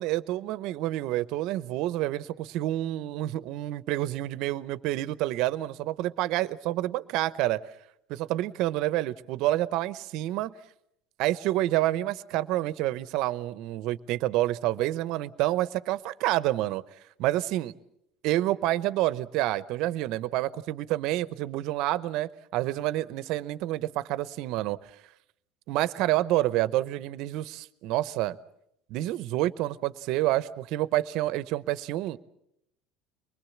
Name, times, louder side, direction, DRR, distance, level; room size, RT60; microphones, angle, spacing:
voice 1, 0.0-7.6 8.1-10.5 11.2-16.8 17.2-17.7 18.2-24.8 25.7-28.4 28.9-32.2, right 15 dB, 65° right, 0.9 m, -28 dB
24.0 x 20.5 x 7.2 m
supercardioid pair, 110°, 0 cm